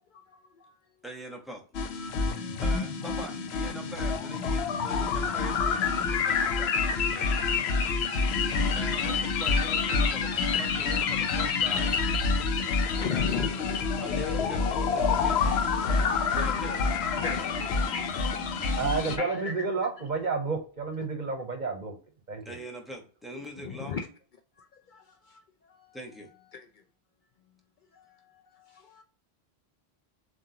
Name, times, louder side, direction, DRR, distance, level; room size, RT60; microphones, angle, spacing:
voice 1, 0.1-0.8 1.9-2.6 7.5-7.7 11.7-11.8 12.6-13.8 14.4-14.8 15.3-15.4 17.2-18.8 19.2-19.7 23.6-24.1 24.6-26.0 26.5-26.8 27.9-29.0, left 6 dB, 60° left, 0.6 m, -39 dB
voice 2, 1.0-1.6 2.2-7.3 8.7-11.9 13.1-13.6 14.0-15.5 16.3-16.8 22.4-24.0 25.9-26.3, equal, ahead, 1.0 m, -43 dB
sound 1, 1.7-19.2, left 5 dB, 80° left, 0.9 m, -27 dB
voice 3, 18.8-22.0 22.3-22.6 23.6-23.7, right 4 dB, 50° right, 0.8 m, -31 dB
7.3 x 2.6 x 2.8 m
omnidirectional pair, 1.1 m